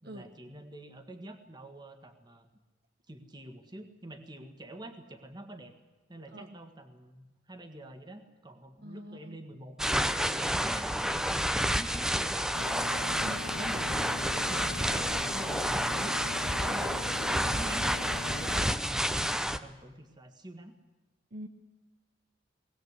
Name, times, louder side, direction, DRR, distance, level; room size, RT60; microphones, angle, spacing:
voice 1, 0.0-2.5 3.1-5.7 6.1-12.7 13.0-17.0 17.3-20.7, right 1 dB, 20° right, 7 dB, 1.7 m, -46 dB
voice 2, 8.8-9.4 13.2-13.4 21.3-21.5, equal, 55° right, 6 dB, 1.2 m, -44 dB
sound 1, 9.8-19.6, equal, 5° right, 0.7 m, -30 dB
sound 2, 12.5-18.7, left 5 dB, 70° left, 0.7 m, -42 dB
21.0 x 18.0 x 8.2 m, 1.2 s
head